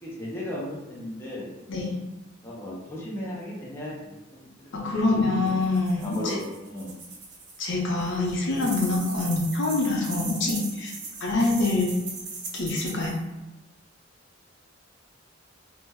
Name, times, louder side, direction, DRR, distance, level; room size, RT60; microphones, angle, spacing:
voice 1, 0.0-1.5 2.4-5.5 6.0-6.9, left 1 dB, 10° left, -6 dB, 0.6 m, -36 dB
voice 2, 4.7-6.4 7.6-10.9 11.2-11.9 12.5-13.2, left 2 dB, 65° left, -3 dB, 0.6 m, -25 dB
sound 1, 5.5-7.7 8.0-13.2, right 4 dB, 60° right, 0.6 m, -39 dB
2.2 x 2.1 x 3.4 m, 1.0 s
head